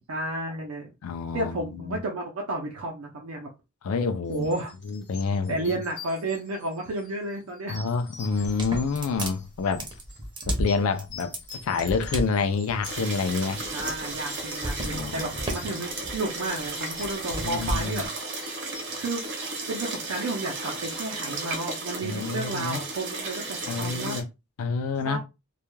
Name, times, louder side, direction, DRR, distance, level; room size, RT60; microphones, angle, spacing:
voice 1, 0.1-0.9 1.3-3.5 4.3-4.7 5.5-7.8 13.7-18.1 19.0-19.2 19.7-24.2 25.0-25.2, right 2 dB, 85° right, 0.5 m, -32 dB
voice 2, 1.0-2.0 3.8-5.8 7.7-9.8 10.5-11.3 11.6-13.6 14.8-15.3 15.7-15.9 17.4-18.0 22.0-22.8 23.7-24.3 24.6-25.2, left 4 dB, 75° left, 0.4 m, -28 dB
sound 1, 4.3-20.1, left 5 dB, 55° left, 0.8 m, -48 dB
sound 2, 8.3-18.1, right 1 dB, 20° right, 0.6 m, -33 dB
sound 3, 12.8-24.2, right 3 dB, 55° right, 0.8 m, -34 dB
2.3 x 2.1 x 3.0 m
head